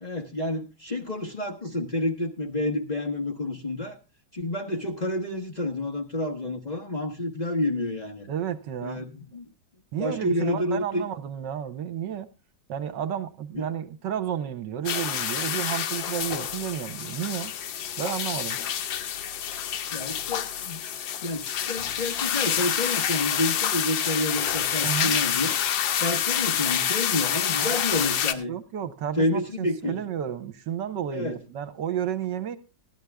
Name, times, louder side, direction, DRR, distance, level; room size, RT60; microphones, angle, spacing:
voice 1, 0.0-4.0 4.3-8.3 8.8-9.5 10.0-11.1 13.5-13.7 19.9-20.8 21.2-25.6 26.0-28.5 29.2-30.0 31.1-31.4, left 1 dB, 25° left, 1 dB, 1.1 m, -29 dB
voice 2, 8.3-9.0 9.9-12.3 12.7-17.5 18.0-18.6 24.8-25.2 27.6-27.8 28.5-32.6, right 9 dB, 75° right, 12 dB, 1.5 m, -32 dB
sound 1, 14.9-28.3, left 9 dB, 80° left, 1.6 m, -28 dB
15.5 x 11.5 x 3.4 m, 0.28 s
omnidirectional pair, 2.0 m